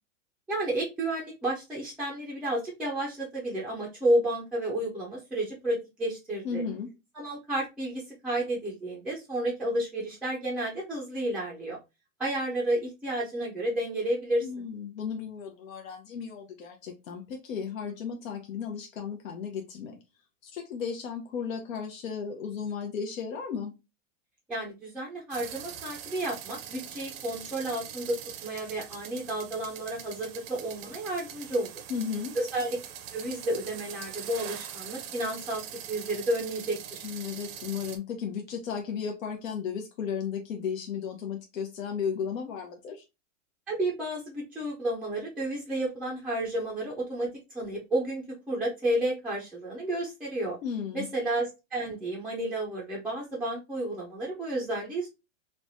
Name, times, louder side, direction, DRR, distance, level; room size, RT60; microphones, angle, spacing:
voice 1, 0.5-6.6 7.2-11.8 12.2-14.5 24.5-31.7 32.4-32.8 33.1-37.1 43.7-47.3 47.5-50.6 50.9-55.1, right 1 dB, 5° right, -5 dB, 0.4 m, -31 dB
voice 2, 6.4-6.9 14.4-20.0 20.4-23.7 31.9-32.4 37.0-43.0 50.6-51.1, left 6 dB, 85° left, 3 dB, 0.7 m, -34 dB
sound 1, 25.3-38.0, right 9 dB, 50° right, 0.6 m, -43 dB
3.2 x 2.1 x 2.5 m, 0.25 s
hypercardioid pair, 130°, 39 cm